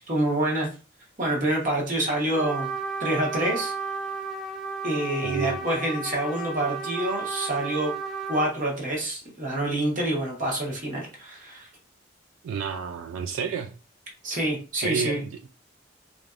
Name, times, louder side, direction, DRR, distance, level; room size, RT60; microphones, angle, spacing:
voice 1, 0.1-0.7 1.2-2.7 3.0-3.7 4.8-7.9 8.3-11.7 14.2-15.2, right 1 dB, 40° right, -1 dB, 1.0 m, -27 dB
Trumpet, 2.3-8.5, right 4 dB, ahead, 0.5 m, -33 dB
voice 2, 5.2-5.6 12.4-13.7 14.8-15.5, right 7 dB, 90° right, 6 dB, 0.3 m, -30 dB
3.2 x 2.6 x 2.4 m, 0.34 s
head